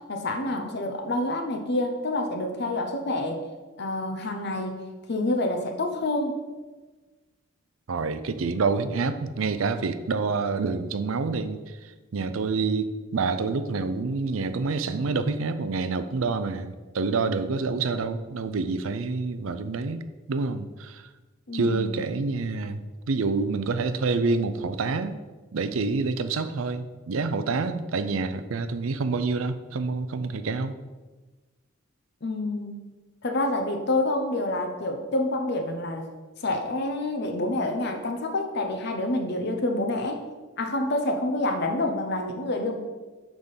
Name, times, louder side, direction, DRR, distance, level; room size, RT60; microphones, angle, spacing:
voice 1, 0.0-3.4 3.8-6.4 21.5-22.1 32.2-32.8 33.2-36.1 36.4-40.2 40.6-42.8, left 2 dB, 55° left, 4 dB, 0.8 m, -28 dB
voice 2, 7.9-21.1 21.5-22.8 23.1-25.2 25.5-30.8, right 4 dB, 85° right, 11 dB, 0.5 m, -27 dB
6.0 x 5.1 x 5.5 m, 1.3 s
head